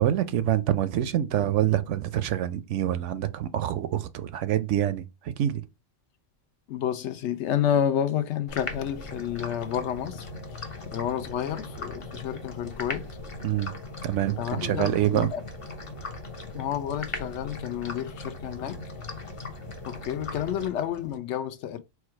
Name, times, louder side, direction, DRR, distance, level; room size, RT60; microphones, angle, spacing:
voice 1, 0.0-5.7 13.4-13.8 14.0-15.3, right 12 dB, 75° right, 0.9 m, -26 dB
voice 2, 6.7-10.6 10.9-13.1 14.4-15.4 16.5-18.8 19.8-21.8, left 9 dB, 70° left, 0.9 m, -30 dB
sound 1, 8.5-21.2, left 2 dB, 30° left, 0.7 m, -39 dB
4.6 x 2.3 x 4.4 m
omnidirectional pair, 1.3 m